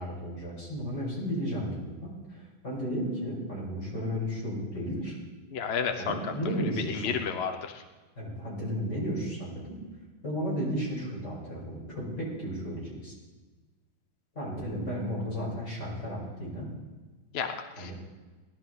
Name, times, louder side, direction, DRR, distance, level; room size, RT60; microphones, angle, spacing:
voice 1, 0.0-5.2 6.0-7.2 8.2-9.8 10.2-13.1 14.3-16.7 17.8-17.9, equal, 30° left, -5 dB, 6.1 m, -34 dB
voice 2, 5.5-6.1 6.9-7.8 17.3-17.9, left 6 dB, 65° left, 6 dB, 0.6 m, -31 dB
19.0 x 12.0 x 4.1 m, 1.3 s
omnidirectional pair, 2.4 m